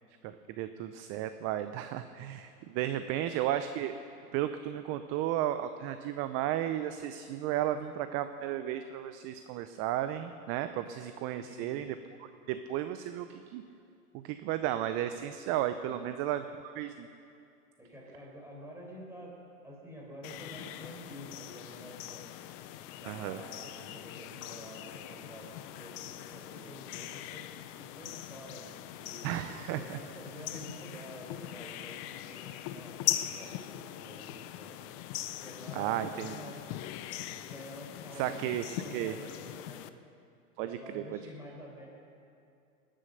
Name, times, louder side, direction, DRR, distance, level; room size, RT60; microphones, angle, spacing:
voice 1, 0.2-4.0 4.3-12.0 12.5-13.6 14.1-17.1 23.1-23.4 29.2-30.0 35.7-36.4 38.2-38.6 38.9-39.1 40.6-41.2, right 12 dB, 30° right, 10 dB, 0.5 m, -34 dB
voice 2, 11.4-12.0 15.8-16.0 17.8-22.2 23.0-25.5 25.7-27.5 27.8-29.5 29.8-34.9 35.4-36.6 37.4-38.5 38.8-39.9 40.6-41.9, equal, 5° right, -2 dB, 4.3 m, -48 dB
sound 1, 20.2-39.9, left 13 dB, 25° left, 0.4 m, -41 dB
19.0 x 10.0 x 6.6 m, 2.5 s
hypercardioid pair, 115°, 46 cm